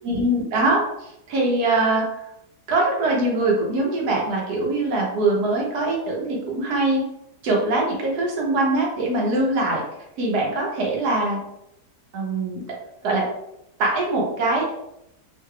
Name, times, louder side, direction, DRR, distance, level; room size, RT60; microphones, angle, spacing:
voice 1, 0.0-2.1 2.7-7.0 7.4-9.8 10.2-11.4 12.1-12.6 13.0-13.2 13.8-14.7, right 2 dB, 70° right, -2 dB, 1.4 m, -22 dB
3.3 x 3.2 x 2.2 m, 0.82 s
omnidirectional pair, 1.8 m